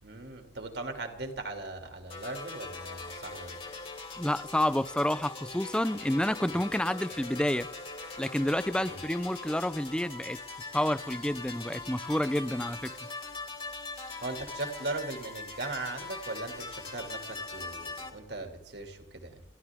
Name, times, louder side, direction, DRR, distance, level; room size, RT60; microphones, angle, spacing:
voice 1, 0.0-3.6 8.8-9.0 14.2-19.4, right 2 dB, 65° right, 2.7 m, -39 dB
sound 1, 2.1-18.1, left 3 dB, 30° left, 2.8 m, -42 dB
voice 2, 4.2-7.7 8.2-10.4 10.7-12.9, left 1 dB, 5° left, 0.5 m, -29 dB
30.0 x 12.5 x 3.7 m
head